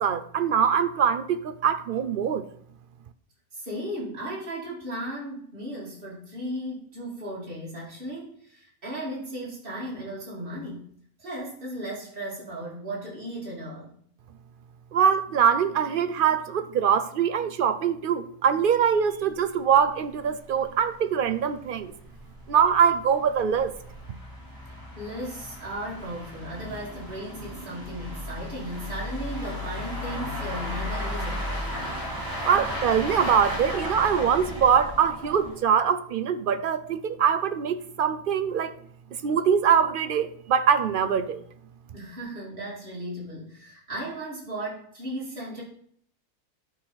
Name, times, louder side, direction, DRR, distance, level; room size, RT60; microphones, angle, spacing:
voice 1, 0.0-2.4 14.9-21.9 22.5-23.7 32.4-38.7 39.2-41.4, right 7 dB, 65° right, 0.5 m, -23 dB
voice 2, 3.5-10.9 11.2-13.9 25.0-31.6 41.9-45.6, right 1 dB, 40° right, 3.0 m, -36 dB
sound 1, 19.3-19.4 19.7-19.8 20.2-20.3 20.6-20.7 21.3-35.7, left 1 dB, 15° right, 3.4 m, -35 dB
11.5 x 4.1 x 5.7 m
omnidirectional pair, 1.5 m